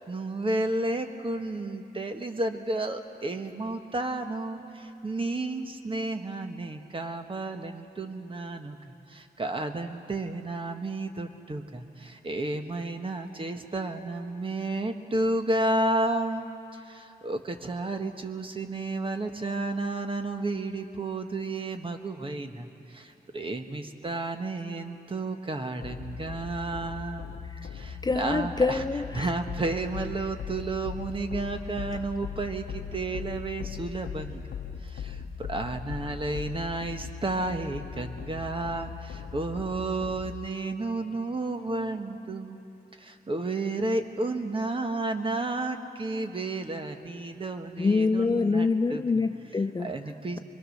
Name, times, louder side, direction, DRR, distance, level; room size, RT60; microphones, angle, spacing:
voice 1, 0.0-8.8 9.1-16.5 16.7-27.4 27.6-28.8 29.1-34.4 34.8-42.6 43.0-49.0 49.8-50.4, right 2 dB, 30° right, 6 dB, 1.4 m, -32 dB
sound 1, 25.8-40.5, left 7 dB, 85° left, 0.8 m, -39 dB
voice 2, 28.0-29.3 47.8-49.9, left 4 dB, 25° left, 8 dB, 0.6 m, -25 dB
25.5 x 22.0 x 6.6 m, 2.8 s
wide cardioid pair, 110°, 17 cm